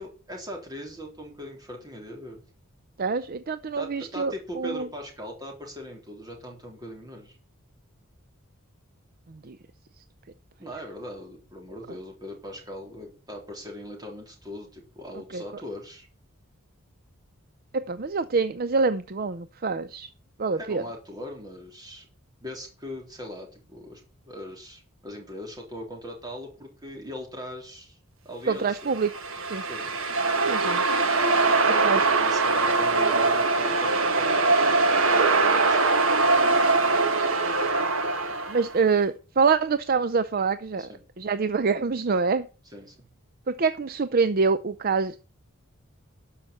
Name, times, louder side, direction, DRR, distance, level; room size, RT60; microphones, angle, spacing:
voice 1, 0.0-2.4 3.8-7.4 10.6-16.1 20.5-22.1 22.4-24.0 24.3-28.0 28.3-28.9 29.6-29.9 31.6-36.3 40.8-41.0 42.6-43.1, equal, 20° right, 1 dB, 3.6 m, -40 dB
voice 2, 3.0-4.9 9.4-9.6 15.3-15.4 17.7-20.1 20.4-20.8 28.5-29.1 29.5-29.6 30.4-30.8 31.8-32.0 38.5-40.9 41.2-42.5 43.5-45.2, right 4 dB, 45° right, 13 dB, 0.5 m, -25 dB
sound 1, 28.9-38.7, right 3 dB, 65° right, 1.4 m, -22 dB
12.5 x 5.7 x 7.6 m, 0.35 s
head